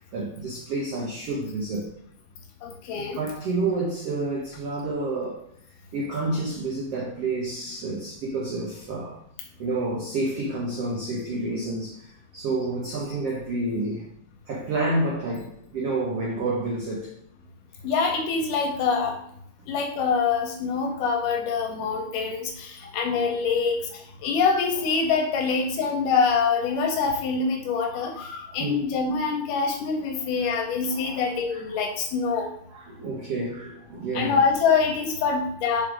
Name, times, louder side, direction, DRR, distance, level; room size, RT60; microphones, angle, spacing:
voice 1, 0.1-1.9 3.1-5.4 5.9-9.2 9.6-12.1 12.3-14.1 14.5-17.1 28.5-28.8 30.4-30.6 30.9-31.6 32.3-32.4 32.7-34.4, right 2 dB, 80° right, 1.3 m, -29 dB
voice 2, 2.6-3.2 17.8-19.2 19.7-32.5 34.1-35.8, left 5 dB, 75° left, 2.1 m, -25 dB
5.3 x 5.0 x 4.9 m
omnidirectional pair, 4.2 m